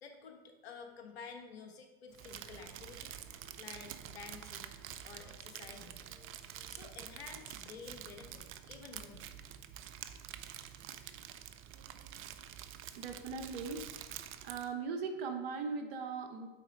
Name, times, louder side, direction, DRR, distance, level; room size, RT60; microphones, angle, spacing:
voice 1, 0.0-3.1 3.6-4.8 5.0-6.0 6.7-9.3, left 5 dB, 85° left, 5 dB, 1.2 m, -51 dB
Crumpling crinkling, 2.1-14.7, right 10 dB, 40° right, 0.6 m, -48 dB
sound 1, 2.7-8.1, left 1 dB, 30° left, 2.6 m, -67 dB
voice 2, 12.9-13.9 14.4-16.5, right 5 dB, 70° right, 6 dB, 1.2 m, -39 dB
8.8 x 4.2 x 5.2 m, 1.1 s
hypercardioid pair, 90°, 30 cm